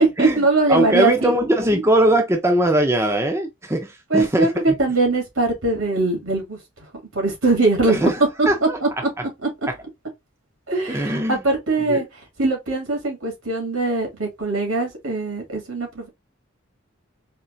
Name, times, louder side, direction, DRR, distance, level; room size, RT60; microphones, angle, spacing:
voice 1, 0.0-1.3 1.7-1.8 4.1-6.6 7.1-8.1 8.4-8.9 9.4-9.5 10.7-12.1 12.4-16.1, right 2 dB, 90° right, 2.4 m, -21 dB
voice 2, 0.7-4.8 7.9-8.2 8.5-8.8 10.9-11.4 11.9-12.0, right 1 dB, 15° right, 0.5 m, -20 dB
4.3 x 2.9 x 2.6 m
head